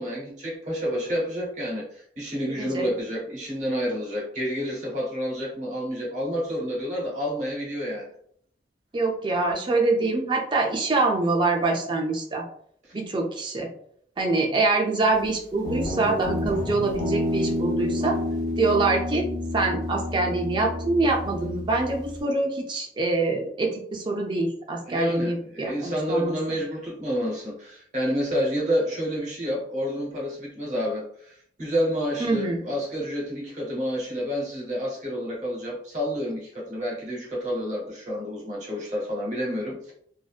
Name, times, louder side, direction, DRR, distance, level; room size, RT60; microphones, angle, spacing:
voice 1, 0.0-8.1 24.9-39.9, equal, 40° right, -3 dB, 0.9 m, -29 dB
voice 2, 8.9-12.4 12.9-13.7 14.2-18.2 18.6-19.3 19.5-26.6 32.2-32.7, right 3 dB, 25° right, 1 dB, 0.4 m, -25 dB
Guitar, 15.6-22.2, left 1 dB, 20° left, 0.6 m, -29 dB
2.6 x 2.1 x 2.3 m, 0.64 s
head